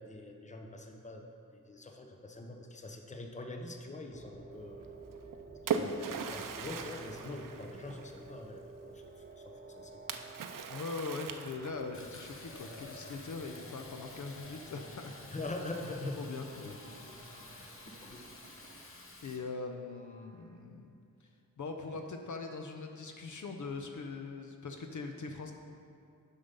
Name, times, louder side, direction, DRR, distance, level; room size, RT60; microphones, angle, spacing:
voice 1, 0.0-1.3 1.7-4.9 5.6-9.0 9.4-10.2 15.3-16.2 16.6-16.8 17.1-18.3, left 2 dB, 20° left, 3 dB, 0.7 m, -44 dB
sound 1, 4.1-20.6, right 3 dB, 30° right, 0.9 m, -53 dB
Splash splatter, 5.1-8.3 10.1-12.0, right 6 dB, 70° right, 0.6 m, -38 dB
voice 2, 10.7-15.1 16.2-16.7 19.2-20.9 21.6-25.5, left 4 dB, 60° left, 4 dB, 0.6 m, -41 dB
Fill (with liquid), 11.9-19.4, left 2 dB, 40° left, 1.1 m, -51 dB
6.7 x 5.6 x 5.3 m, 2.4 s
wide cardioid pair, 85°, 34 cm